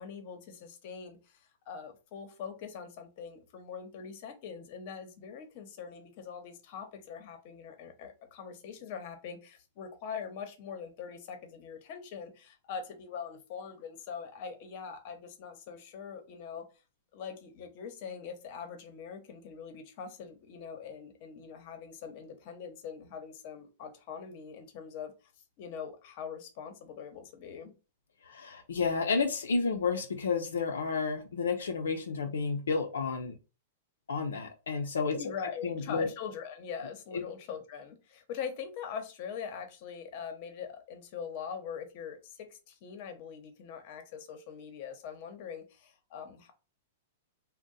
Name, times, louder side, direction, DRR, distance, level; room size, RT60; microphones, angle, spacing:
voice 1, 0.0-16.6 17.1-25.1 25.6-27.7 35.1-46.5, left 7 dB, 50° left, 0.8 m, -42 dB
voice 2, 28.2-33.3 34.1-35.2 35.6-36.1 37.1-37.2, left 4 dB, 90° left, 0.5 m, -31 dB
2.6 x 2.1 x 3.8 m
hypercardioid pair, 125°, 0 cm